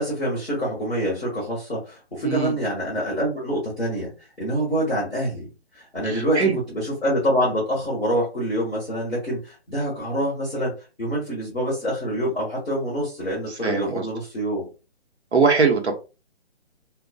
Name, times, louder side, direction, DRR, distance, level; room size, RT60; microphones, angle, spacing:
voice 1, 0.0-4.1 4.4-5.5 5.7-6.4 6.7-10.7 11.0-14.7, equal, ahead, -18 dB, 0.4 m, -26 dB
voice 2, 2.2-2.5 6.0-6.6 13.5-14.1 15.3-15.9, right 5 dB, 90° right, 2 dB, 0.9 m, -21 dB
2.6 x 2.2 x 2.3 m, 0.31 s
hypercardioid pair, 150°, 32 cm